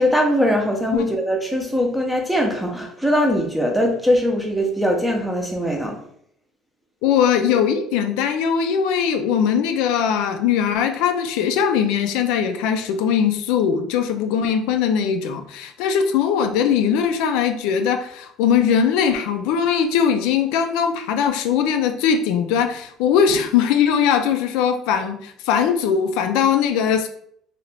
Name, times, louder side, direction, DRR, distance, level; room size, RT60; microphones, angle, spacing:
voice 1, 0.0-6.0, equal, ahead, 0.5 m, -21 dB
voice 2, 7.0-27.1, left 7 dB, 85° left, 0.4 m, -20 dB
2.8 x 2.6 x 3.3 m
cardioid pair, 155°, 0 cm